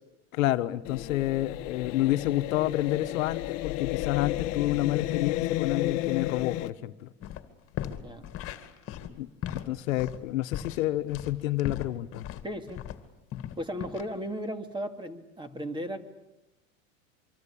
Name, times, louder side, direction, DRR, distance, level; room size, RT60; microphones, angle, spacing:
voice 1, 0.3-7.1 9.2-9.3 9.5-12.3, left 15 dB, 80° left, 11 dB, 1.3 m, -29 dB
sound 1, 0.8-6.7, left 16 dB, 55° left, 1.3 m, -32 dB
sound 2, 7.2-7.4 7.7-13.0 13.3-14.0, left 11 dB, 35° left, 2.4 m, -37 dB
voice 2, 12.4-12.8 13.6-16.0, equal, 10° right, 8 dB, 2.4 m, -35 dB
25.0 x 24.5 x 8.7 m, 0.96 s
supercardioid pair, 125°, 40 cm